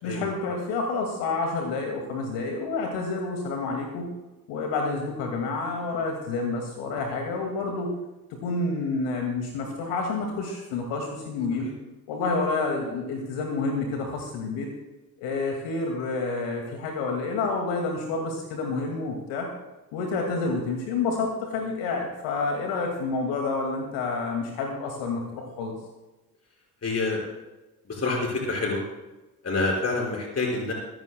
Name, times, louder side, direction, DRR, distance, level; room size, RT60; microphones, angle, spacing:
voice 1, 0.0-4.1 4.5-7.9 8.3-11.7 12.1-14.7 15.2-19.5 19.9-25.8, left 3 dB, 65° left, 2 dB, 2.3 m, -29 dB
voice 2, 26.8-27.2 27.9-28.8 29.4-30.7, left 3 dB, 35° left, -1 dB, 5.5 m, -27 dB
24.5 x 15.0 x 2.3 m, 1.1 s
figure-of-eight pair, 50°, 45 cm